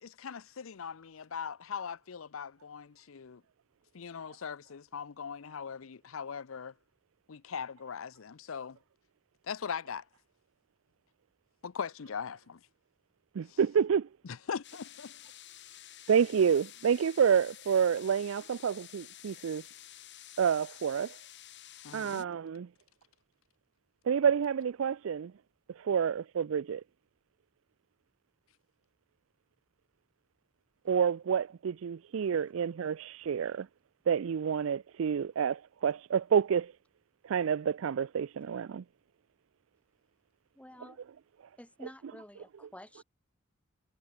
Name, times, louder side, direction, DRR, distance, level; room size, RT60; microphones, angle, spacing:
voice 1, 0.0-3.4 3.9-6.7 7.3-8.8 9.4-10.0 11.6-12.6 13.5-13.6 14.2-15.2 21.8-22.3, left 6 dB, 75° left, 0.6 m, -40 dB
voice 2, 13.3-14.1 16.1-19.6 20.4-21.2 21.9-22.7 24.1-25.3 25.8-26.8 30.9-33.7 34.1-36.7 37.2-38.8 40.8-40.9, right 7 dB, 70° right, 0.4 m, -28 dB
sound 1, 14.6-22.3, left 13 dB, 60° left, 3.3 m, -51 dB
voice 3, 40.6-41.0 41.6-43.0, left 1 dB, 5° left, 2.3 m, -50 dB
head